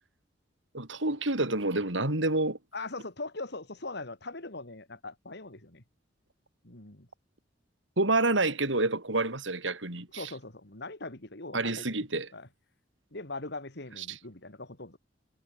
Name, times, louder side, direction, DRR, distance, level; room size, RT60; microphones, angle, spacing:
voice 1, 0.7-2.6 8.0-10.3 11.5-12.3 14.0-14.2, right 2 dB, 80° right, 4.3 m, -28 dB
voice 2, 2.7-5.8 6.6-7.1 10.1-12.1 12.3-12.5 13.1-15.0, left 2 dB, 60° left, 3.6 m, -41 dB
head